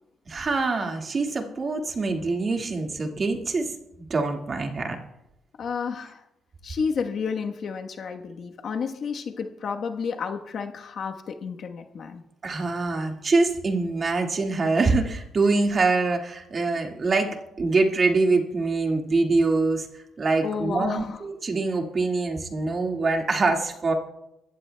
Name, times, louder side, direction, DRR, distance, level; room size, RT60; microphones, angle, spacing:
voice 1, 0.3-5.0 12.4-19.9 20.2-23.9, right 3 dB, 40° right, 2 dB, 1.9 m, -24 dB
voice 2, 5.6-6.2 6.6-12.2 20.4-21.2, left 6 dB, 60° left, 4 dB, 1.2 m, -31 dB
23.0 x 14.5 x 2.3 m, 0.89 s
cardioid pair, 90°, 0 cm